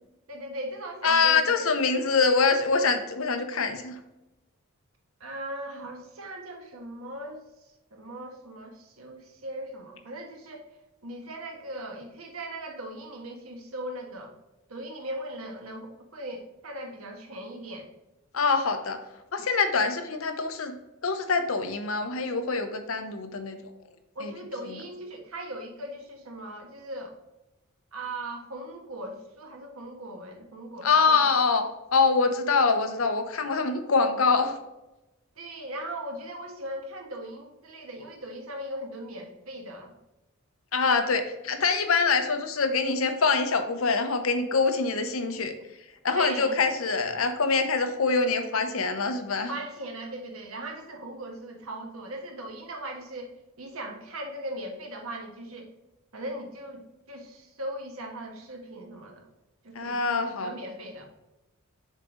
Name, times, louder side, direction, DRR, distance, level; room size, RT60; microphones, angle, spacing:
voice 1, 0.3-1.7 5.2-7.4 7.9-10.7 11.0-14.3 14.7-17.9 24.1-27.2 27.9-31.3 35.4-39.9 46.2-46.7 49.5-55.7 56.1-59.3 59.6-61.1, right 1 dB, 90° right, 2 dB, 1.4 m, -39 dB
voice 2, 1.0-4.0 18.3-19.0 19.3-20.7 21.0-23.6 24.2-24.3 30.8-31.6 31.9-34.6 40.7-45.5 46.0-49.5 59.7-60.5, left 4 dB, 75° left, 7 dB, 0.9 m, -24 dB
6.6 x 3.8 x 4.9 m, 0.96 s
head